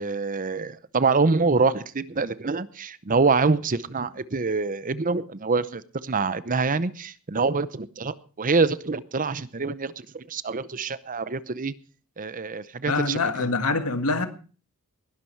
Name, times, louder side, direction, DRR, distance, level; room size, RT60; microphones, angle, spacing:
voice 1, 0.0-11.7 12.2-13.5, right 4 dB, 35° right, 0.7 m, -25 dB
voice 2, 12.9-14.3, left 3 dB, 80° left, 1.8 m, -25 dB
20.0 x 12.0 x 4.6 m
head